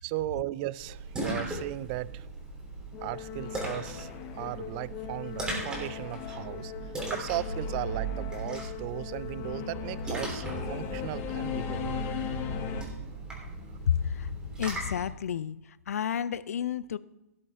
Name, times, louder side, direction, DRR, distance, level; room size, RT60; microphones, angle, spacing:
voice 1, 0.0-2.3 3.0-4.1 4.3-12.0 12.8-13.8, right 18 dB, 30° right, 0.3 m, -37 dB
Splash splatter, 0.8-15.1, right 2 dB, 10° right, 3.3 m, -38 dB
Singing / Musical instrument, 2.9-12.8, left 8 dB, 30° left, 1.1 m, -38 dB
voice 2, 13.9-14.3 14.6-15.6 15.9-17.0, left 9 dB, 65° left, 0.4 m, -30 dB
17.0 x 6.9 x 3.6 m
hypercardioid pair, 130°, 9 cm